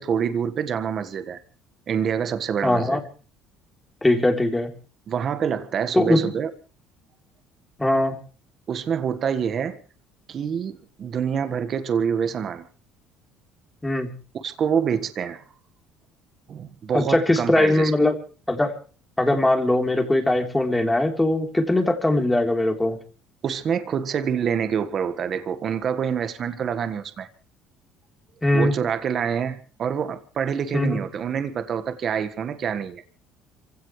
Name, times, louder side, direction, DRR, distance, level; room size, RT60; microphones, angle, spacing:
voice 1, 0.0-1.4 1.9-3.0 5.1-6.5 8.7-9.8 10.3-12.7 14.3-15.4 16.5-18.1 23.4-27.3 28.5-33.0, right 7 dB, 45° right, 1.6 m, -26 dB
voice 2, 2.6-3.0 4.0-4.7 5.9-6.3 7.8-8.2 13.8-14.1 16.9-18.1 18.5-18.7 19.2-23.0 28.4-28.7 30.7-31.0, left 1 dB, 10° left, 3.6 m, -21 dB
27.0 x 16.5 x 3.3 m
cardioid pair, 100°, 0 cm